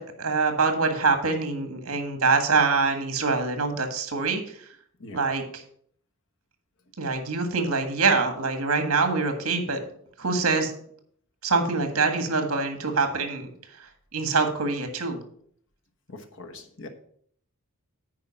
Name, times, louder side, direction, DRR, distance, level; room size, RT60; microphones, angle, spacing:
voice 1, 0.0-4.4 5.1-5.6 7.0-9.8 10.2-10.7 11.4-13.5 14.1-15.2, right 4 dB, 65° right, 6 dB, 1.6 m, -24 dB
voice 2, 16.1-16.9, left 2 dB, 60° left, 6 dB, 1.2 m, -42 dB
9.5 x 4.7 x 5.8 m, 0.62 s
head